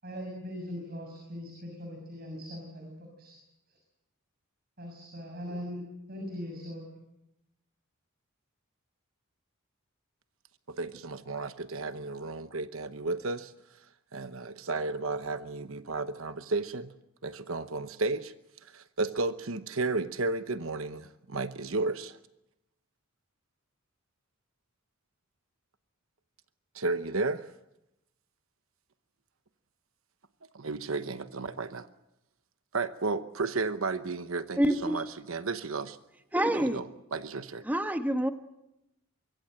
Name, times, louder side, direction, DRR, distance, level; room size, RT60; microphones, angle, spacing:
voice 1, 0.0-3.4 3.7-3.8 4.8-5.8 6.1-6.9, equal, 45° right, 2 dB, 6.8 m, -40 dB
voice 2, 10.7-13.5 14.1-16.9 17.2-18.3 18.6-22.2 26.7-27.5 30.5-31.9 32.7-36.0 36.7-36.8 37.1-37.6, right 3 dB, 70° right, 11 dB, 1.0 m, -33 dB
voice 3, 34.6-35.0 36.3-36.8 37.6-38.3, right 1 dB, 10° right, 7 dB, 1.3 m, -27 dB
24.5 x 23.0 x 7.8 m, 0.87 s
head